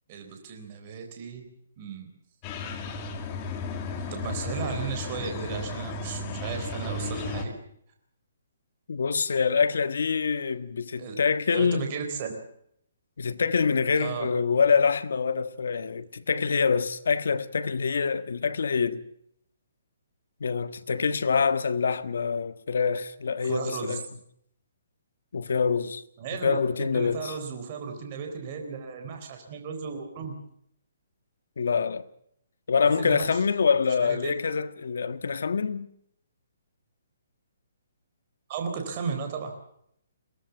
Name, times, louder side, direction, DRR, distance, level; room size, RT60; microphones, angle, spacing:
voice 1, 0.1-1.5 1.8-2.1 4.0-7.6 10.9-11.2 11.5-12.3 14.0-14.3 23.4-24.0 26.2-30.3 32.9-33.4 34.0-34.3 38.5-39.5, right 6 dB, 30° right, 3.9 m, -35 dB
sound 1, 2.4-7.4, left 3 dB, 20° left, 2.3 m, -34 dB
voice 2, 8.9-11.9 13.2-19.0 20.4-24.0 25.3-26.0 26.4-27.3 31.6-32.0 32.7-35.9, left 5 dB, 75° left, 1.5 m, -25 dB
23.0 x 17.5 x 7.1 m
hypercardioid pair, 170°, 0 cm